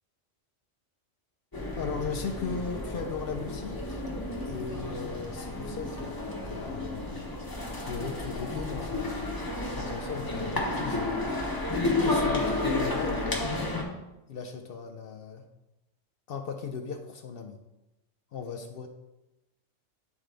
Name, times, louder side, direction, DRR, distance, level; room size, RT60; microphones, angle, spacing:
sound 1, 1.5-13.8, left 2 dB, 20° left, 0.9 m, -31 dB
voice 1, 1.8-4.1 4.5-6.2 6.4-7.3 7.9-11.2 12.0-13.9 14.3-15.5 16.3-17.6 18.3-18.9, left 5 dB, 60° left, 6 dB, 0.6 m, -37 dB
9.3 x 3.8 x 3.3 m, 0.97 s
omnidirectional pair, 1.3 m